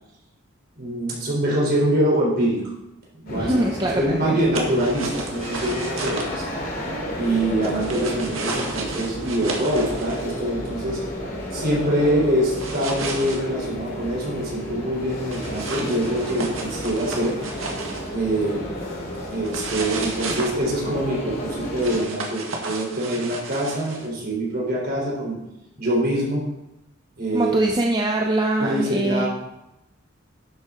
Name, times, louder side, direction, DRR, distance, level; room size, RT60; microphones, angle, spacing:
voice 1, 0.8-2.6 3.2-3.6 3.9-6.4 7.2-11.0 11.5-17.4 18.1-18.7 19.3-25.4 25.8-26.4 27.2-27.5 28.6-29.2, right 1 dB, 50° right, -3 dB, 4.1 m, -24 dB
sound 1, 3.3-22.0, equal, 45° left, 2.5 m, -32 dB
voice 2, 3.3-4.4 27.3-29.2, right 1 dB, 20° right, 1 dB, 0.6 m, -22 dB
sound 2, 4.5-6.3 7.6-10.3 12.6-13.4 15.3-18.1 19.4-20.5 21.8-24.1, right 3 dB, 85° right, 1.9 m, -33 dB
11.5 x 7.7 x 3.8 m, 0.90 s
head